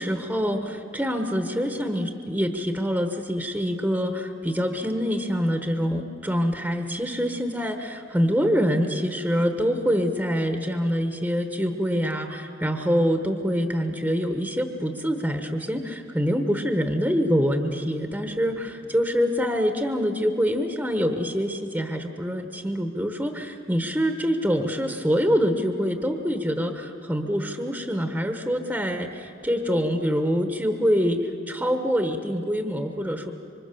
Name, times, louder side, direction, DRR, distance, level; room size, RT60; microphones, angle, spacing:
voice 1, 0.0-33.3, equal, 10° right, 6 dB, 1.1 m, -25 dB
26.5 x 25.0 x 6.9 m, 2.8 s
head